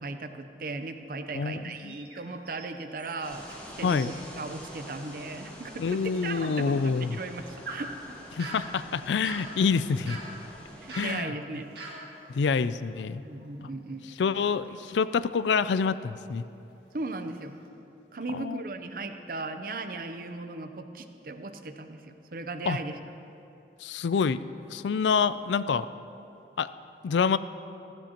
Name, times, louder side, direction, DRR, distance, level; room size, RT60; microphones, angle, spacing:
voice 1, 0.0-7.9 10.8-11.7 13.2-14.1 16.9-17.5 18.1-23.0, right 3 dB, 50° right, 8 dB, 0.7 m, -37 dB
voice 2, 1.3-1.9 3.8-4.1 5.8-7.2 8.3-10.2 10.9-11.3 12.3-13.2 14.2-16.4 18.3-18.6 22.7-22.8 23.8-24.4 24.7-25.9 26.6-26.7 27.0-27.4, left 5 dB, 85° left, 15 dB, 0.4 m, -27 dB
sound 1, 1.7-3.6 3.9-4.3 4.7-4.8 5.4-5.5 7.0-13.7 14.1-15.7 16.2-16.5 16.9-17.7, right 2 dB, 70° right, 1.9 m, -45 dB
sound 2, 3.2-11.1, equal, 10° left, 1.7 m, -46 dB
15.0 x 15.0 x 2.9 m, 2.8 s
head